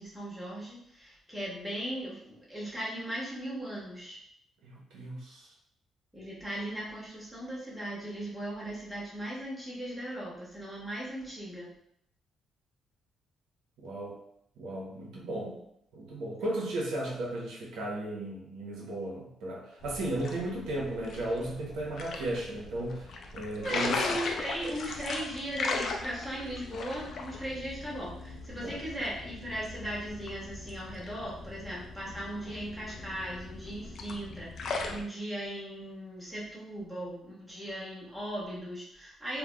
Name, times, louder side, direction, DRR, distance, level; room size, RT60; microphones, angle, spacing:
voice 1, 0.0-4.2 6.1-11.7 15.1-15.6 23.6-39.4, right 1 dB, ahead, -7 dB, 1.1 m, -38 dB
voice 2, 4.6-5.5 13.8-14.2 14.6-15.6 15.9-24.0 28.6-28.8, right 1 dB, 90° right, -4 dB, 0.9 m, -35 dB
sound 1, 19.8-35.0, left 3 dB, 65° left, 0.4 m, -38 dB
3.3 x 2.2 x 2.2 m, 0.74 s
cardioid pair, 90°, 0 cm